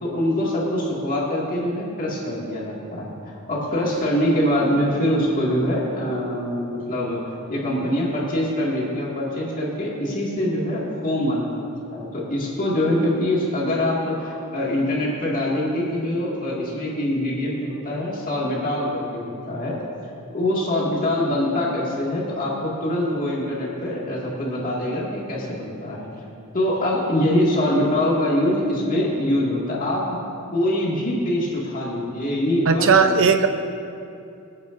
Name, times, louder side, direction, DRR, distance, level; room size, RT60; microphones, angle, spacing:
voice 1, 0.0-7.2 7.5-19.8 20.3-26.1 26.5-30.1 30.5-33.2, left 1 dB, 40° left, -5 dB, 2.1 m, -24 dB
voice 2, 32.7-33.5, right 5 dB, 65° right, 8 dB, 0.7 m, -16 dB
24.5 x 8.7 x 2.6 m, 2.6 s
head